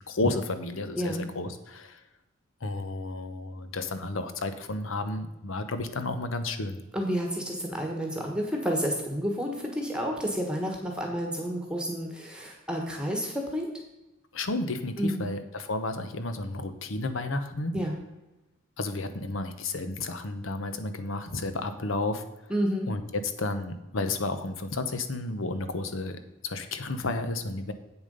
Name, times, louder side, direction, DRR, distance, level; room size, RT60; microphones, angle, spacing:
voice 1, 0.0-2.0 2.6-6.8 14.3-17.8 18.8-22.2 22.9-27.7, left 2 dB, 80° left, 9 dB, 0.9 m, -32 dB
voice 2, 1.0-1.3 6.9-13.7 15.0-15.3 17.7-18.0 22.5-22.9, equal, 5° right, 1 dB, 1.3 m, -30 dB
8.3 x 7.0 x 5.3 m, 0.99 s
head